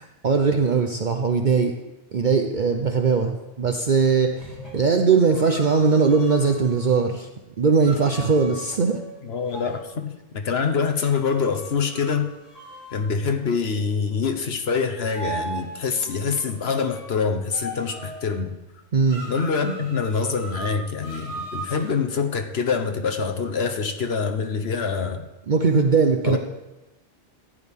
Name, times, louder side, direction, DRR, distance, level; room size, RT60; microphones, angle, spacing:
voice 1, 0.2-1.7 2.1-7.3 7.6-9.0 18.9-19.2 25.5-26.4, right 5 dB, 50° right, 4 dB, 0.8 m, -20 dB
sound 1, 4.2-7.0 7.8-9.8 10.9-13.1 15.0-17.1 17.5-18.3 19.1-21.9, right 2 dB, 35° left, 4.8 m, -38 dB
voice 2, 9.2-12.3 12.9-18.5 19.3-25.2 26.2-26.4, left 5 dB, 60° left, 6 dB, 1.2 m, -25 dB
14.5 x 10.0 x 3.6 m, 1.0 s
omnidirectional pair, 1.2 m